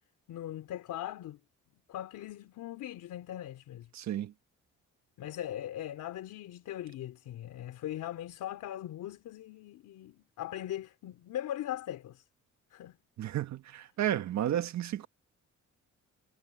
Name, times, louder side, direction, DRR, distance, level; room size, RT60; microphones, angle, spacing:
voice 1, 0.3-1.4 1.9-3.9 5.2-12.2 12.7-13.0, left 12 dB, 80° left, 3.5 m, -40 dB
voice 2, 3.9-4.3 13.2-15.1, right 11 dB, 65° right, 1.4 m, -32 dB
cardioid pair, 90°, 30 cm